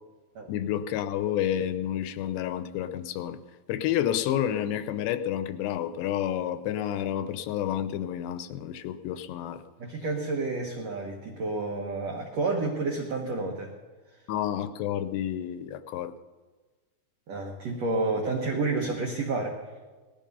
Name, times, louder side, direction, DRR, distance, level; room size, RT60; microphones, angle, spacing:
voice 1, 0.5-3.4 3.7-9.6 14.3-16.1, left 10 dB, 80° left, 11 dB, 2.8 m, -30 dB
voice 2, 9.8-13.7 17.3-19.6, right 3 dB, 85° right, 1 dB, 1.4 m, -30 dB
18.0 x 13.0 x 5.4 m, 1.3 s
omnidirectional pair, 5.0 m